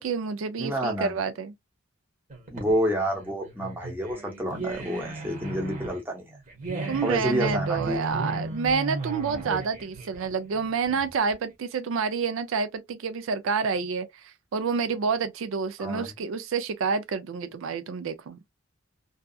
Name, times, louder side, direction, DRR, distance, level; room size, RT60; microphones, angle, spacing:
voice 1, 0.0-1.5 6.9-18.4, right 5 dB, 70° right, 0.4 m, -28 dB
voice 2, 0.6-1.2 2.5-6.2 7.0-8.0 15.8-16.1, equal, 10° right, 0.7 m, -29 dB
sound 1, 2.3-11.3, right 2 dB, 35° right, 0.9 m, -35 dB
2.7 x 2.3 x 2.3 m
head